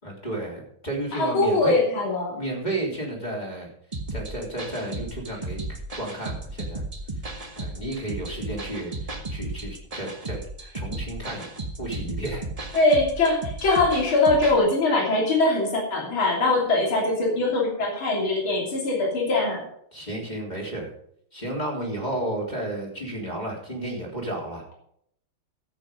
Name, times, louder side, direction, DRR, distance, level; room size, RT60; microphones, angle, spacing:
voice 1, 0.0-1.8 2.3-3.7 4.1-5.6 6.0-6.8 7.6-10.4 10.7-11.5 11.8-12.7 19.9-20.9 21.3-24.6, right 1 dB, 20° left, -2 dB, 3.6 m, -32 dB
voice 2, 1.1-2.4 12.7-19.6, left 2 dB, 65° left, -2 dB, 3.8 m, -22 dB
sound 1, 3.9-14.6, right 2 dB, 25° right, 0.9 m, -35 dB
14.0 x 8.3 x 5.1 m, 0.70 s
omnidirectional pair, 2.4 m